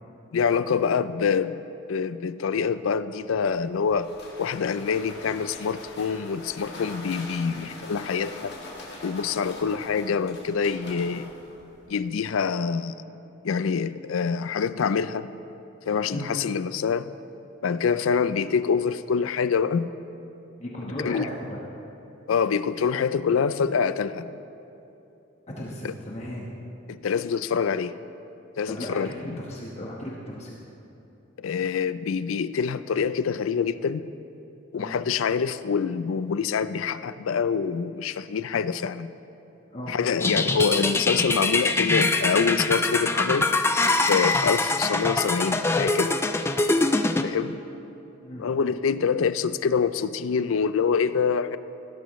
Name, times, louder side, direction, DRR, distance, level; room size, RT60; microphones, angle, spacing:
voice 1, 0.3-1.6 1.9-4.1 4.4-8.5 9.0-11.3 11.9-12.9 13.4-15.3 15.9-17.1 17.6-19.9 21.0-21.3 22.3-24.3 25.8-25.9 26.9-27.9 28.6-29.4 31.4-34.0 34.7-39.1 39.9-43.5 44.0-46.1 47.2-47.6 48.4-51.6, left 6 dB, 90° left, 14 dB, 0.4 m, -25 dB
sound 1, 3.4-12.1, left 2 dB, 55° left, 2.1 m, -43 dB
voice 2, 7.5-8.0 16.1-16.3 20.6-21.6 25.6-26.5 28.7-30.6 34.7-34.9 39.7-40.3 48.2-48.4, left 1 dB, 35° left, -3 dB, 1.2 m, -36 dB
sound 2, 40.2-47.2, left 2 dB, 10° left, 0.4 m, -23 dB
15.5 x 13.0 x 3.1 m, 3.0 s
head